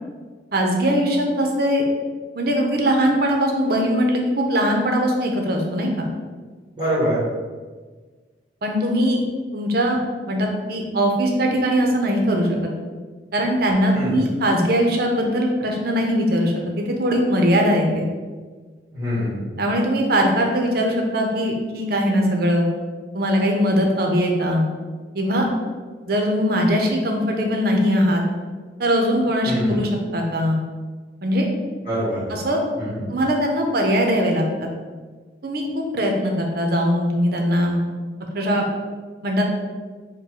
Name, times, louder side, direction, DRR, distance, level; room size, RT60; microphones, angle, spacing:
voice 1, 0.5-1.9 2.4-6.1 8.6-9.2 9.5-10.0 10.3-12.7 13.3-18.0 19.6-22.7 23.1-24.7 25.1-25.5 26.1-28.2 28.8-30.6 31.2-31.5 32.3-32.6 33.1-34.7 35.4-37.8 38.3-38.7 39.2-39.4, equal, 60° right, 1 dB, 0.7 m, -20 dB
voice 2, 6.8-7.3 13.9-14.3 18.9-19.4 29.4-29.8 31.8-32.2 32.8-33.0, equal, 25° right, -9 dB, 1.2 m, -24 dB
4.5 x 2.2 x 4.7 m, 1.4 s
head